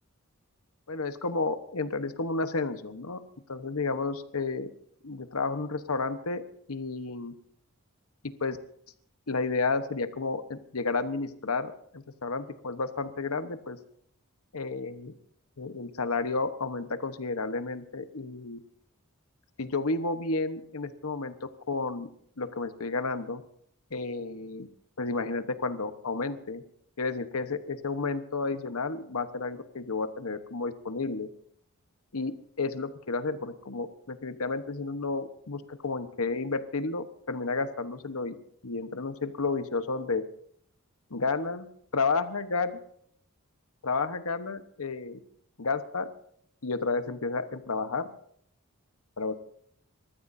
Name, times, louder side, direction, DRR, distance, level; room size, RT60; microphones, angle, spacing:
voice 1, 0.9-3.2 3.5-4.7 5.0-6.4 6.7-7.3 8.2-8.6 9.3-13.8 14.5-15.1 15.6-18.6 19.6-21.4 21.7-22.1 22.4-23.4 23.9-24.7 25.0-26.6 27.0-31.3 32.1-40.2 41.1-41.7 41.9-42.8 43.8-45.2 45.6-46.1 46.6-48.1 49.2-49.3, left 3 dB, 75° left, 10 dB, 1.1 m, -31 dB
27.0 x 14.0 x 2.7 m, 0.66 s
head